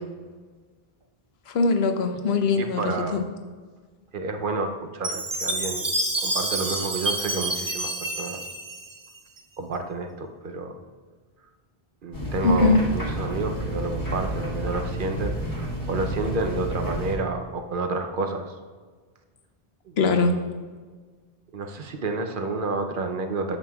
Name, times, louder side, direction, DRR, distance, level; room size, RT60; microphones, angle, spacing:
voice 1, 1.5-2.8 3.1-3.2 12.4-12.8 20.0-20.3, left 4 dB, 80° left, 6 dB, 0.9 m, -21 dB
voice 2, 2.6-3.3 4.1-5.9 6.2-8.4 9.6-10.8 12.0-18.5 19.9-20.4 21.5-23.6, right 3 dB, 60° right, 5 dB, 0.8 m, -30 dB
Chime, 5.0-9.4, right 1 dB, 25° right, 0.5 m, -28 dB
sound 1, 12.1-17.2, right 1 dB, 20° left, 1.1 m, -30 dB
9.0 x 7.0 x 2.3 m, 1.5 s
omnidirectional pair, 1.0 m